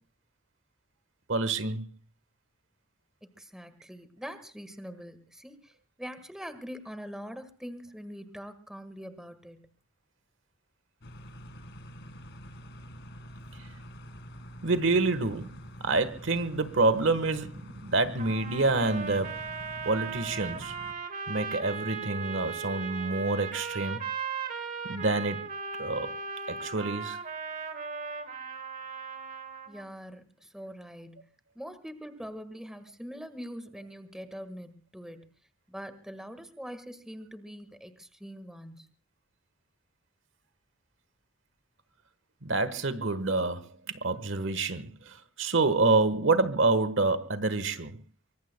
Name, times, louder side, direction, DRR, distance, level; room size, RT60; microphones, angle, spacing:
voice 1, 1.3-1.9 14.6-15.6 15.8-19.4 19.8-20.7 21.3-24.0 24.8-25.4 25.8-26.1 26.5-27.2 42.4-48.0, right 3 dB, 60° right, 1.3 m, -27 dB
voice 2, 3.2-9.7 29.7-31.3 31.5-35.3 35.7-38.9, equal, ahead, 1.5 m, -43 dB
sound 1, 11.0-20.9, equal, 55° left, 1.9 m, -46 dB
sound 2, 18.2-29.9, right 5 dB, 35° right, 1.7 m, -37 dB
25.0 x 24.0 x 2.2 m
head